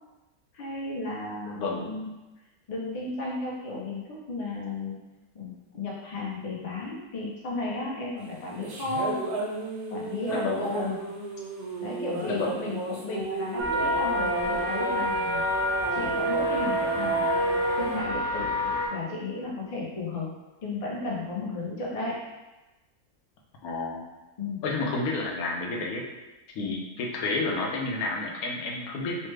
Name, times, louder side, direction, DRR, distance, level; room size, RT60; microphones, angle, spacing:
voice 1, 0.5-2.1 2.7-5.0 5.3-9.2 9.9-11.0 11.8-15.4 15.9-17.2 17.7-20.3 20.6-22.2 24.4-24.6 26.6-26.8, left 2 dB, 50° left, -4 dB, 0.4 m, -34 dB
voice 2, 1.5-1.9 10.3-10.7 12.3-12.5 23.6-24.1 24.6-26.0 26.5-29.3, left 3 dB, 80° left, -1 dB, 1.1 m, -30 dB
sound 1, 8.6-18.0, right 4 dB, 90° right, 1.1 m, -32 dB
sound 2, 13.6-18.9, left 1 dB, 70° right, 0.4 m, -28 dB
3.2 x 2.1 x 3.2 m, 1.1 s
omnidirectional pair, 1.5 m